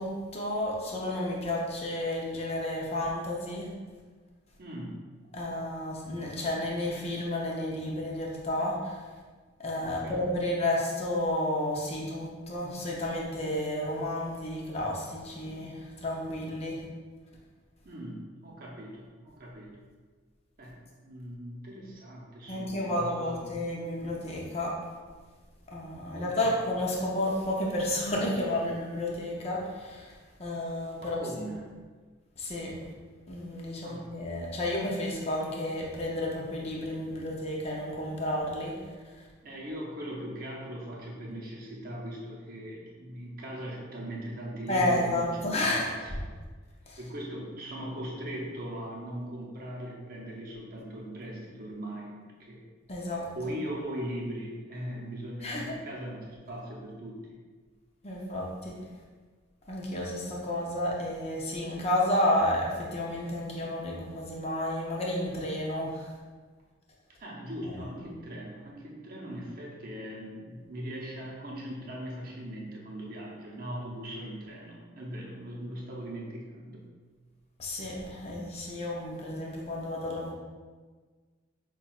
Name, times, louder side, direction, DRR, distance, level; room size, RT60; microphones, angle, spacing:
voice 1, 0.0-3.7 5.3-9.0 9.6-16.8 22.5-24.7 25.7-31.2 32.4-32.7 33.3-38.8 44.7-45.9 46.9-47.0 52.9-53.3 55.4-55.7 58.0-58.8 59.7-66.1 67.6-67.8 77.6-80.3, left 1 dB, 30° left, -3 dB, 0.6 m, -31 dB
voice 2, 4.6-5.0 9.8-10.2 17.8-19.8 20.6-23.7 26.1-26.5 31.0-31.8 33.8-34.0 39.4-46.1 47.0-52.6 53.3-57.4 67.2-76.8, equal, 45° right, -3 dB, 0.7 m, -40 dB
5.7 x 2.3 x 2.4 m, 1.5 s
head